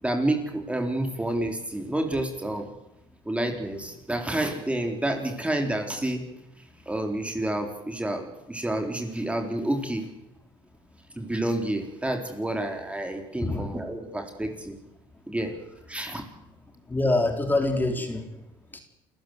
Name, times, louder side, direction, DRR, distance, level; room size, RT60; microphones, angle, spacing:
voice 1, 0.0-2.7 3.3-6.2 6.9-10.1 11.2-14.8 15.3-15.5 15.9-16.2, right 1 dB, 10° right, 4 dB, 3.9 m, -29 dB
voice 2, 13.4-13.8 16.9-18.3 18.7-18.8, left 2 dB, 15° left, 5 dB, 4.1 m, -25 dB
28.0 x 14.5 x 8.0 m, 0.90 s
supercardioid pair, 85°, 12 cm